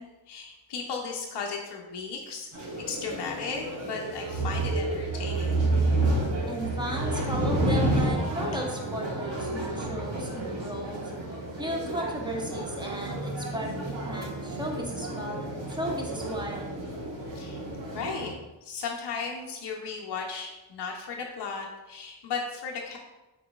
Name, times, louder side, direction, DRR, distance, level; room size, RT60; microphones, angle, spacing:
voice 1, 0.0-2.5 2.8-5.6 17.3-17.6 17.9-18.3 18.6-23.0, left 5 dB, 65° left, 0 dB, 0.7 m, -35 dB
sound 1, 2.5-18.3, right 2 dB, 75° right, 1.2 m, -30 dB
voice 2, 6.5-11.0 11.6-13.7 14.0-16.7, equal, 10° right, -1 dB, 0.9 m, -35 dB
4.6 x 3.9 x 2.3 m, 1.0 s
cardioid pair, 65°, 44 cm